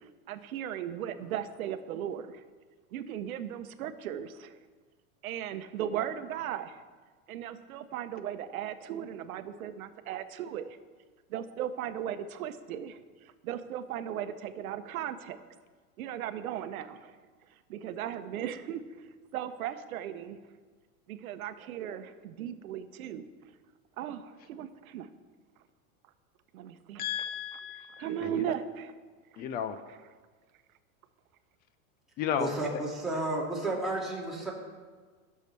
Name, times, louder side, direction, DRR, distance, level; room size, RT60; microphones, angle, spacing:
voice 1, 0.3-2.3 2.9-4.5 5.2-6.7 7.3-10.6 11.3-13.0 13.4-15.4 16.0-17.0 17.7-18.8 19.3-20.4 21.1-23.2 24.0-25.1 26.5-27.0 27.4-27.6 28.0-28.9 29.9-30.0, right 10 dB, 90° right, 11 dB, 0.8 m, -37 dB
voice 2, 27.0-28.4 29.4-29.8 32.2-32.5, left 9 dB, 25° left, 10 dB, 0.4 m, -33 dB
voice 3, 32.4-34.5, right 2 dB, ahead, -6 dB, 2.3 m, -32 dB
17.5 x 6.7 x 3.3 m, 1.4 s
supercardioid pair, 140°, 42 cm